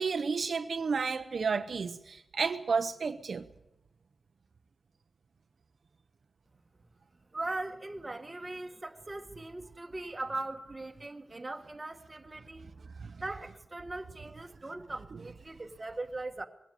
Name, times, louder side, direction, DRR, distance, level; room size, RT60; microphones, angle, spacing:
voice 1, 0.0-3.4, right 5 dB, 60° right, 0.8 m, -31 dB
voice 2, 7.3-12.7 13.2-16.5, right 2 dB, 20° right, 1.5 m, -40 dB
20.5 x 16.5 x 8.2 m
wide cardioid pair, 135°, 0 cm